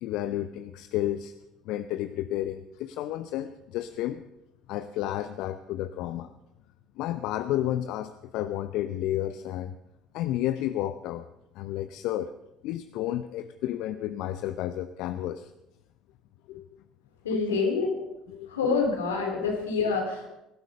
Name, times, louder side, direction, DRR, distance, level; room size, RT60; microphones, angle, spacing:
voice 1, 0.0-1.3 1.6-4.2 4.7-6.3 7.0-9.7 10.1-11.3 11.6-12.3 12.6-15.5 16.5-16.6 17.3-17.6 18.3-18.5 19.3-19.5, left 13 dB, 65° left, 11 dB, 0.7 m, -31 dB
voice 2, 17.2-17.9 18.5-20.3, left 4 dB, 85° left, 2 dB, 3.4 m, -27 dB
19.5 x 12.0 x 5.4 m, 0.90 s
hypercardioid pair, 60°, 0 cm